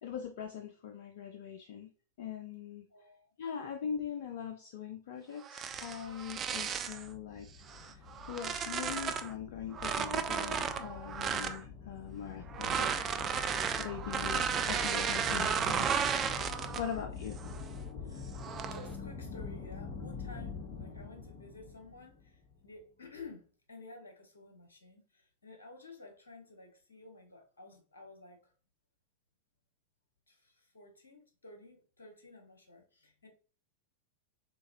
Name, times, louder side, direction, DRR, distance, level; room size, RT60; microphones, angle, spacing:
voice 1, 0.0-1.9 2.2-2.9 3.4-7.5 7.8-8.0 8.3-13.0 13.8-17.4, left 8 dB, 55° left, 0.4 m, -42 dB
voice 2, 2.9-3.3 18.0-18.2 18.7-28.5 30.3-33.3, left 3 dB, 75° left, 1.2 m, -53 dB
sound 1, 5.4-7.1 7.7-9.3 9.7-11.6 12.5-17.0 17.4-17.7 18.4-18.9, right 7 dB, 25° right, 0.4 m, -34 dB
sound 2, 5.6-22.7, left 5 dB, 30° left, 1.0 m, -45 dB
4.5 x 3.7 x 2.6 m
figure-of-eight pair, 90°, 0 cm